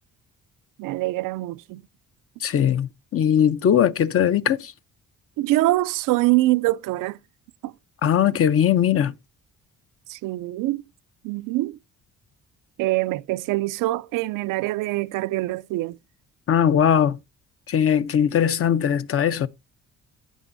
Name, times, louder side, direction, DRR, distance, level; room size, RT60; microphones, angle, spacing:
voice 1, 0.8-1.8 5.4-7.2 7.6-7.7 10.1-10.8 11.2-11.8 12.8-16.0, right 18 dB, 80° right, 0.5 m, -24 dB
voice 2, 2.4-4.7 8.0-9.1 16.5-17.2 17.7-19.5, left 9 dB, 45° left, 0.6 m, -20 dB
15.5 x 6.1 x 2.6 m
cardioid pair, 90°, 31 cm